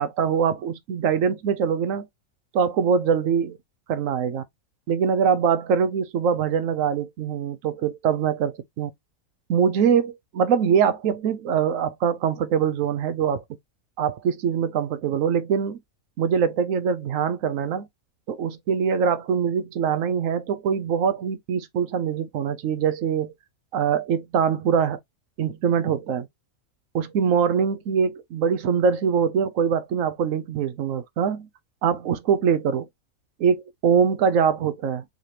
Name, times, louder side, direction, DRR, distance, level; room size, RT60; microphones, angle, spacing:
voice 1, 0.0-2.1 2.5-3.6 3.9-4.4 4.9-8.9 9.5-13.4 14.0-15.8 16.2-17.9 18.3-23.3 23.7-25.0 25.4-26.3 26.9-31.5 31.8-32.9 33.4-35.0, right 7 dB, 70° right, 1.0 m, -23 dB
4.8 x 3.0 x 3.2 m
omnidirectional pair, 1.5 m